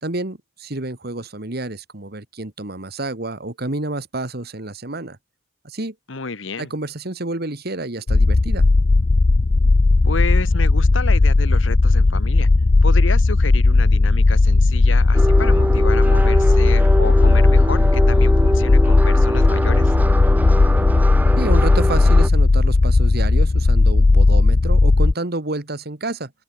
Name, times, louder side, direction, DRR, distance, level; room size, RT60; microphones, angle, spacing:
voice 1, 0.0-5.2 5.6-6.0 6.6-8.7 21.4-26.3, right 2 dB, 55° right, 1.9 m, -29 dB
voice 2, 6.1-6.7 10.0-12.5 12.8-19.9, left 4 dB, 75° left, 1.4 m, -30 dB
sound 1, 8.1-25.1, left 3 dB, 40° left, 0.5 m, -15 dB
sound 2, 15.1-22.3, right 1 dB, 10° right, 0.7 m, -24 dB
open air
head